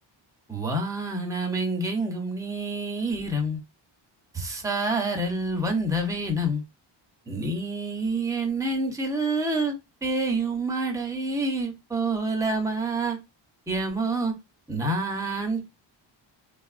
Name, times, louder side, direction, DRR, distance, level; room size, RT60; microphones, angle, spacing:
voice 1, 0.5-3.6 4.3-6.6 7.3-13.2 13.7-14.3 14.7-15.6, right 2 dB, 5° right, 3 dB, 0.6 m, -27 dB
3.4 x 2.3 x 2.3 m, 0.23 s
wide cardioid pair, 150°, 46 cm